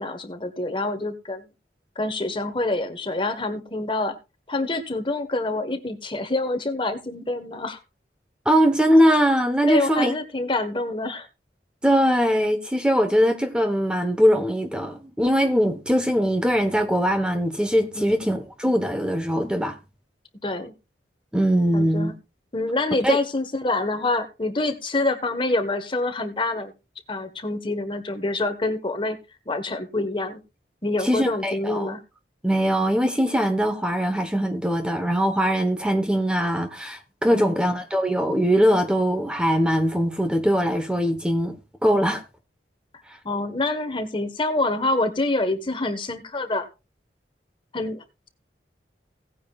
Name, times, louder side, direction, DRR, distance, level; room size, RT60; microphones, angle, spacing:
voice 1, 0.0-1.5 1.9-4.2 4.5-7.8 9.6-11.3 17.9-18.2 20.4-20.7 21.7-22.1 22.5-26.7 27.1-29.2 29.5-30.4 30.8-32.0 37.3-37.6 43.2-46.7 47.7-48.3, left 2 dB, 30° left, 1.4 m, -26 dB
voice 2, 8.4-10.2 11.8-19.8 21.3-22.1 23.0-23.2 31.0-31.9 32.4-42.2, equal, 5° right, 1.1 m, -21 dB
17.5 x 9.4 x 2.4 m
head